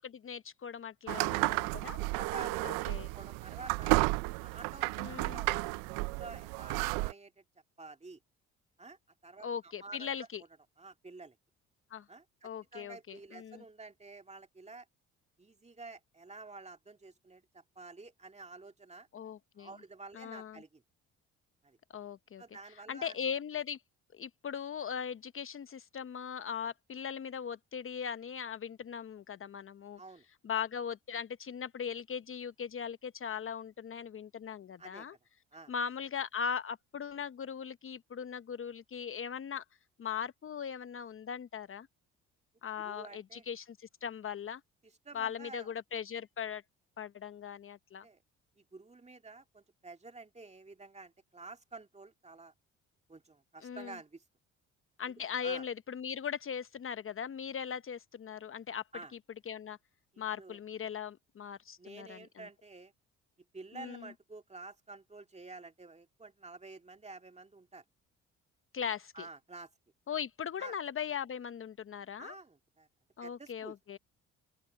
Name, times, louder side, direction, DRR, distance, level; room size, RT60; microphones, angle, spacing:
voice 1, 0.0-2.0 2.6-3.1 5.0-5.4 9.4-10.4 11.9-12.0 12.4-13.6 19.1-19.7 20.1-20.6 21.9-22.4 22.9-23.8 24.1-30.0 30.4-35.1 35.7-39.6 40.0-41.9 42.6-44.6 45.1-46.6 47.0-48.0 53.6-54.0 55.0-58.8 59.5-59.8 60.2-62.5 63.7-64.1 68.7-69.3 70.1-72.3 73.2-74.0, left 7 dB, 40° left, 0.9 m, -39 dB
sound 1, 1.1-7.1, right 25 dB, 85° right, 0.5 m, -32 dB
voice 2, 2.0-2.9 3.1-4.0 4.4-7.4 7.8-8.2 8.8-10.3 10.8-11.4 12.1-14.9 15.4-19.1 19.6-20.8 21.6-21.8 22.4-23.2 30.0-30.3 34.8-35.1 35.5-35.7 42.8-43.5 44.8-45.7 48.0-48.2 48.6-52.5 53.1-54.2 55.4-55.7 58.9-59.1 60.1-60.6 61.8-62.9 63.5-67.8 69.1-69.7 70.6-70.7 72.2-72.9 73.2-74.0, right 3 dB, 20° right, 2.2 m, -50 dB
open air
supercardioid pair, 65°, 32 cm